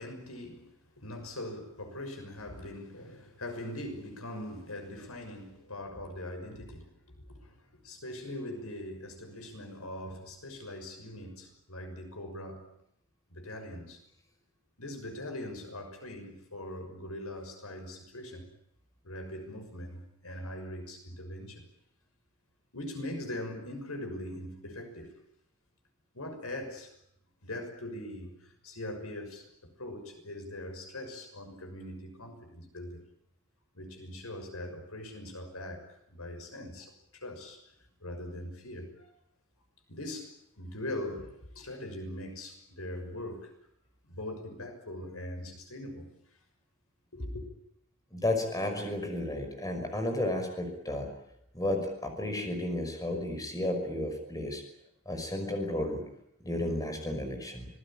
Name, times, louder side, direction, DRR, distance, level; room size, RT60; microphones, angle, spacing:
voice 1, 0.0-12.7 13.3-14.0 14.8-18.5 19.0-21.7 22.7-25.2 26.1-26.9 27.4-33.0 33.7-37.7 38.0-39.1 39.9-43.5 44.1-46.1 47.1-47.5, left 1 dB, 85° left, 6.3 m, -41 dB
voice 2, 48.1-51.1 51.5-54.6 55.1-56.0 56.4-57.7, left 1 dB, 15° left, 5.7 m, -32 dB
26.0 x 19.5 x 8.9 m
head